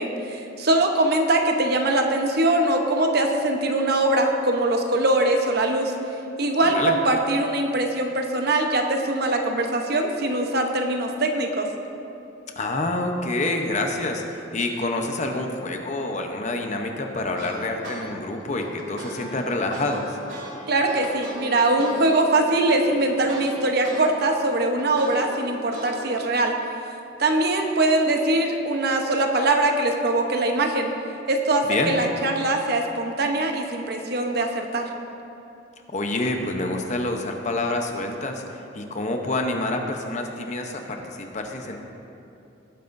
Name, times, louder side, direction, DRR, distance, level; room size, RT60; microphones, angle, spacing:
voice 1, 0.0-5.9 6.4-11.7 20.7-26.5 27.2-30.9 31.3-34.9, right 2 dB, 55° right, 3 dB, 0.9 m, -22 dB
voice 2, 12.6-20.2 31.6-31.9 35.9-41.8, left 2 dB, 40° left, 3 dB, 0.8 m, -27 dB
sound 1, 17.4-18.0 18.4-24.0 24.4-26.2, right 1 dB, 85° right, 1.9 m, -38 dB
18.0 x 9.2 x 2.6 m, 2.8 s
head